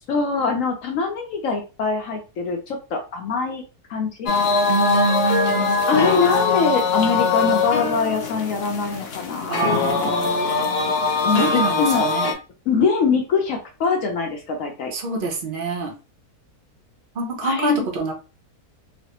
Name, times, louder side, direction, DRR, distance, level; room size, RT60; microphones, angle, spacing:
voice 1, 0.1-3.6 3.9-4.3 5.9-9.7 10.0-10.1 11.2-12.1 12.7-14.9 17.4-17.9, left 4 dB, 65° left, 3 dB, 0.9 m, -23 dB
sound 1, 4.3-12.3, left 4 dB, 90° left, 0.5 m, -22 dB
voice 2, 4.7-5.8 9.5-10.9 11.3-12.3 14.9-15.9 17.2-18.1, right 4 dB, 60° right, 2 dB, 0.5 m, -26 dB
3.1 x 2.1 x 2.8 m, 0.31 s
omnidirectional pair, 1.7 m